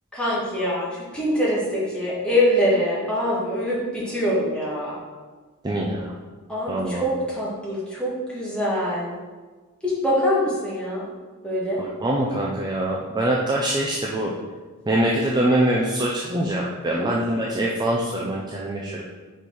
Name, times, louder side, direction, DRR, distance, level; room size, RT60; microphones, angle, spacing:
voice 1, 0.1-5.0 6.5-9.2 9.8-11.1 11.4-11.8 16.9-17.1, equal, 5° left, -7 dB, 1.8 m, -24 dB
voice 2, 5.6-6.1 6.7-7.1 11.8-14.3 14.9-19.0, right 1 dB, 20° right, -3 dB, 0.5 m, -24 dB
5.2 x 4.4 x 4.7 m, 1.3 s
head